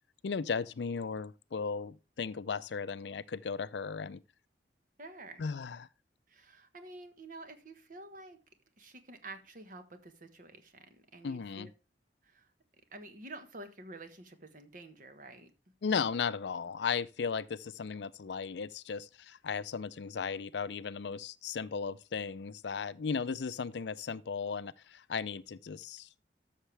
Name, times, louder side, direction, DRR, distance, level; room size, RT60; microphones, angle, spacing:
voice 1, 0.2-4.2 5.4-5.9 11.2-11.7 15.8-26.1, left 5 dB, 75° left, 0.5 m, -36 dB
voice 2, 5.0-5.4 6.3-8.4 8.8-11.7 12.2-12.5 12.9-15.5, right 2 dB, 50° right, 1.4 m, -49 dB
13.0 x 6.5 x 3.3 m
head